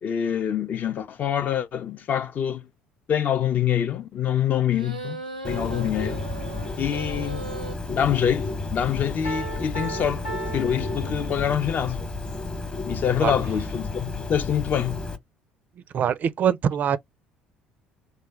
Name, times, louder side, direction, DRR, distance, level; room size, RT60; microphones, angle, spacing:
voice 1, 0.0-2.7 3.1-6.2 6.8-7.5 7.9-10.2 10.5-12.1 12.8-15.1, left 9 dB, 40° left, 0.5 m, -25 dB
sound 1, 4.7-7.7, right 2 dB, 85° right, 0.6 m, -37 dB
Bird, 5.4-15.2, left 3 dB, 25° left, 0.9 m, -32 dB
Piano, 9.2-11.8, right 3 dB, 85° left, 1.1 m, -36 dB
voice 2, 15.9-17.0, right 8 dB, 40° right, 0.4 m, -23 dB
3.3 x 2.2 x 3.6 m
figure-of-eight pair, 55°, 4 cm